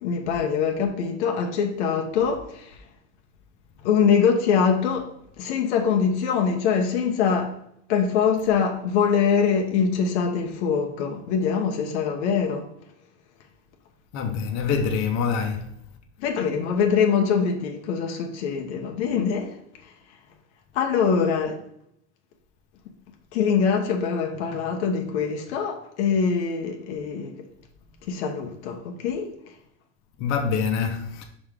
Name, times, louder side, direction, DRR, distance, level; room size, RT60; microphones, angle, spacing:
voice 1, 0.0-2.8 3.8-7.5 7.9-12.7 16.2-19.6 20.7-21.6 23.3-27.4 28.1-29.3, left 6 dB, 85° left, 1.0 m, -23 dB
voice 2, 14.1-15.7 30.2-31.2, left 6 dB, 50° left, 1.1 m, -25 dB
5.2 x 5.0 x 3.6 m
supercardioid pair, 115°, 33 cm